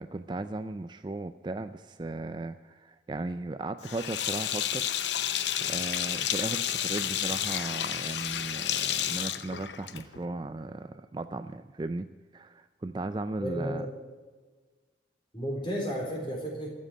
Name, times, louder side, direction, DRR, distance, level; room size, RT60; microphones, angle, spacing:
voice 1, 0.0-4.8 5.6-12.1 12.3-13.9, right 2 dB, 25° right, 11 dB, 0.4 m, -36 dB
Sink (filling or washing), 3.8-10.2, left 10 dB, 85° left, 0.7 m, -31 dB
voice 2, 13.3-13.9 15.3-16.7, equal, 30° left, -1 dB, 3.9 m, -33 dB
13.5 x 7.5 x 9.8 m, 1.4 s
head